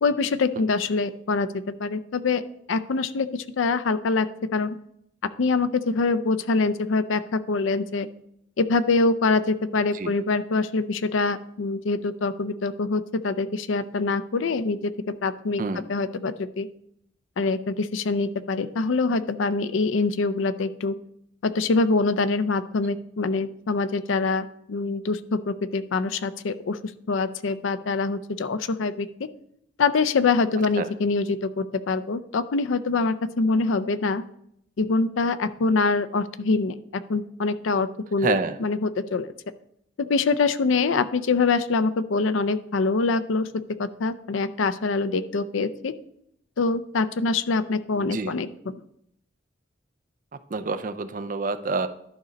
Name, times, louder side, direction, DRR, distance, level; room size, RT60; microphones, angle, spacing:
voice 1, 0.0-1.5 1.8-2.4 2.7-4.8 5.4-8.1 8.6-15.6 15.9-16.7 17.4-21.0 21.4-26.8 27.1-29.3 29.8-34.2 34.8-36.8 37.1-39.3 40.0-43.5 43.8-45.9 46.6-48.8, left 3 dB, 80° left, 14 dB, 0.5 m, -24 dB
voice 2, 38.2-38.6 48.0-48.4 50.5-51.9, right 3 dB, 40° right, 10 dB, 0.5 m, -27 dB
11.5 x 5.1 x 4.1 m, 0.74 s
head